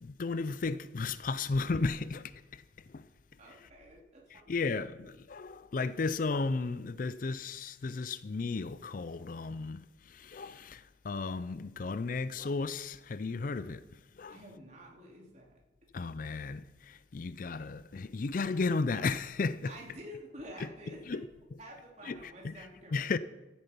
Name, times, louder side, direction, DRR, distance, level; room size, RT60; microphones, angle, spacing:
voice 1, 0.0-2.3 2.9-3.0 4.5-9.8 10.1-13.8 14.2-14.4 15.9-19.7 21.1-21.2 22.1-22.2 22.4-22.5 22.9-23.2, left 4 dB, 50° left, 0.4 m, -34 dB
voice 2, 3.4-5.0 14.3-15.6 19.6-21.3 21.6-23.2, equal, 40° right, 3.2 m, -49 dB
15.0 x 9.7 x 5.3 m
head